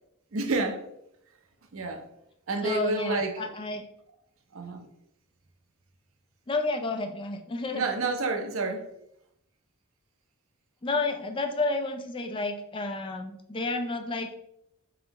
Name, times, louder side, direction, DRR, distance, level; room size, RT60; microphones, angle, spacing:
voice 1, 0.3-0.8 1.7-2.0 2.5-3.3 4.5-4.9 7.7-8.9, right 3 dB, 70° right, 5 dB, 0.6 m, -29 dB
voice 2, 2.6-3.8 6.5-7.8 10.8-14.3, left 3 dB, 25° left, 5 dB, 0.3 m, -31 dB
4.2 x 3.8 x 2.9 m, 0.78 s
head